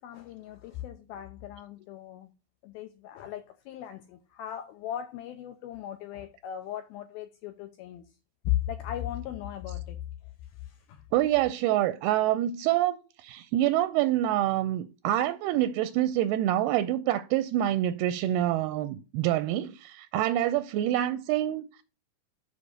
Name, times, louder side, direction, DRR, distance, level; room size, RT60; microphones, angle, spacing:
voice 1, 0.0-2.3 2.6-8.1 8.4-11.0, left 12 dB, 85° left, 2.2 m, -37 dB
voice 2, 11.1-21.8, right 13 dB, 80° right, 2.3 m, -26 dB
6.9 x 5.2 x 6.5 m
omnidirectional pair, 5.0 m